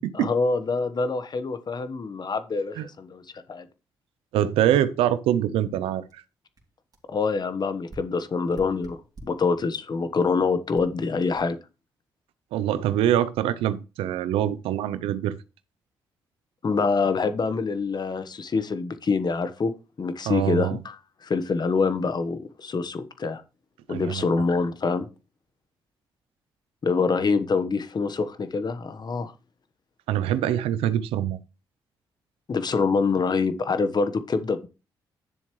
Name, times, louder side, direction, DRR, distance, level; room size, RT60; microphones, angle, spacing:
voice 1, 0.1-3.7 7.1-11.6 16.6-19.7 20.0-21.0 21.2-23.4 23.9-25.1 26.8-29.3 32.5-34.7, left 4 dB, 50° left, 1.2 m, -25 dB
voice 2, 4.3-6.2 12.5-15.4 20.3-20.8 23.9-24.2 30.1-31.4, right 11 dB, 85° right, 0.6 m, -24 dB
sound 1, 6.1-6.2 6.6-6.7 6.9-7.1 7.9-9.5 10.2-10.3 10.7-11.0 11.4-11.5, right 1 dB, 45° right, 3.0 m, -46 dB
10.0 x 7.3 x 3.1 m
supercardioid pair, 50°, 9 cm